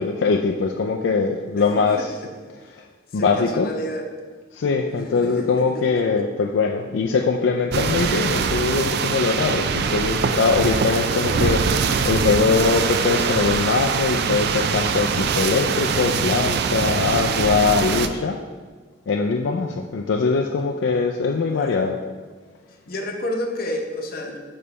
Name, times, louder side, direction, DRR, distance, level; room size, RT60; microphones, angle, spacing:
voice 1, 0.0-2.1 2.8-2.9 3.1-3.7 4.5-18.4 19.1-22.0, left 4 dB, 75° left, 1 dB, 0.4 m, -22 dB
voice 2, 1.6-2.1 3.1-4.1 5.1-5.5 5.7-6.3 21.5-21.8 22.9-24.4, left 1 dB, 55° left, 2 dB, 0.8 m, -30 dB
sound 1, 7.7-18.1, right 5 dB, 60° right, 0.4 m, -23 dB
6.9 x 3.2 x 5.5 m, 1.4 s
head